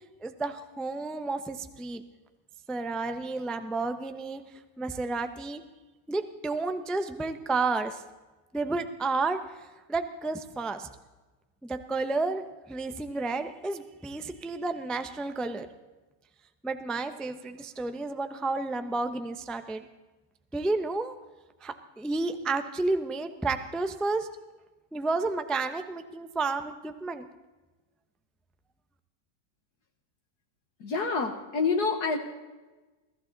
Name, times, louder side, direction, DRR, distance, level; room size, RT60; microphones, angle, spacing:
voice 1, 0.2-2.0 2.7-4.4 4.8-5.6 6.1-8.0 8.5-10.9 11.6-15.7 16.6-19.8 20.5-21.1 21.6-24.3 24.9-27.3, right 3 dB, ahead, 8 dB, 0.4 m, -31 dB
voice 2, 30.8-32.2, left 4 dB, 65° left, 4 dB, 1.8 m, -27 dB
22.5 x 14.5 x 4.0 m, 1.2 s
omnidirectional pair, 1.9 m